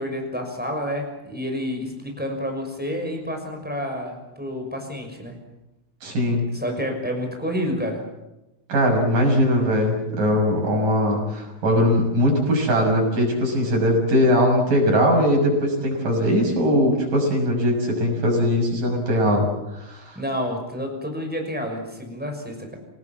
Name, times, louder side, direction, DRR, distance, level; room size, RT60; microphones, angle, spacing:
voice 1, 0.0-5.3 6.3-8.0 20.1-22.8, equal, ahead, 2 dB, 5.8 m, -29 dB
voice 2, 6.0-6.5 8.7-19.5 19.7-20.2, equal, 60° right, 1 dB, 7.9 m, -20 dB
27.5 x 19.0 x 7.4 m, 0.95 s
omnidirectional pair, 4.2 m